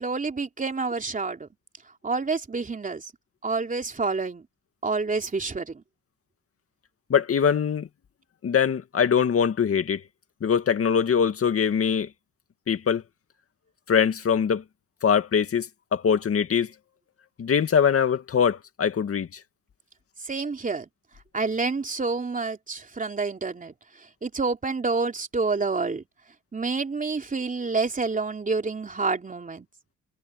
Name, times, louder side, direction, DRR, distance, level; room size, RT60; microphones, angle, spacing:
voice 1, 0.0-1.5 2.0-3.0 3.4-4.4 4.8-5.8 20.2-20.9 21.3-23.7 24.2-26.0 26.5-29.7, right 4 dB, 25° right, 3.3 m, -28 dB
voice 2, 7.1-7.9 8.4-10.0 10.4-12.1 12.7-13.0 13.9-14.6 15.0-16.7 17.4-19.3, left 7 dB, 50° left, 2.1 m, -22 dB
cardioid pair, 90°, 30 cm